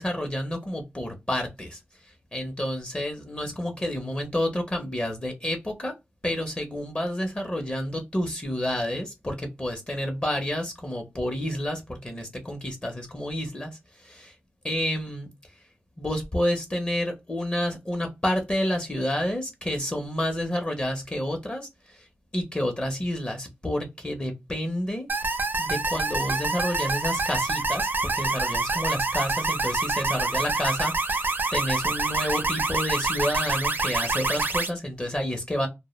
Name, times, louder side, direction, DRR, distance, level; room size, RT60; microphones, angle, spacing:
voice 1, 0.0-1.8 2.3-5.9 6.2-13.7 14.0-14.3 14.6-15.3 16.0-21.7 22.3-25.1 25.6-31.2 31.5-35.7, left 1 dB, 25° left, 0.6 m, -29 dB
sound 1, 25.1-34.7, right 3 dB, 50° right, 0.5 m, -26 dB
2.2 x 2.1 x 2.9 m
wide cardioid pair, 100°, 4 cm